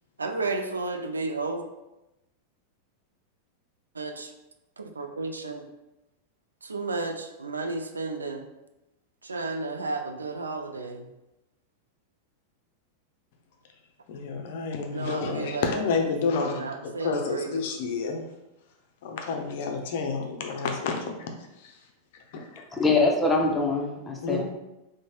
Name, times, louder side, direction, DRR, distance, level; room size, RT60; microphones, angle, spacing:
voice 1, 0.2-1.6 4.0-4.3 4.8-5.7 6.6-8.4 9.2-11.1 14.9-15.6 16.3-17.6, right 3 dB, 75° right, 6 dB, 0.3 m, -32 dB
voice 2, 14.1-18.2 19.0-21.3 21.6-21.8 22.1-22.7 24.2-24.4, left 5 dB, 50° left, 3 dB, 0.5 m, -30 dB
voice 3, 22.7-24.4, left 3 dB, 10° left, 0 dB, 0.6 m, -23 dB
3.8 x 2.1 x 3.2 m, 0.96 s
figure-of-eight pair, 90°, 0 cm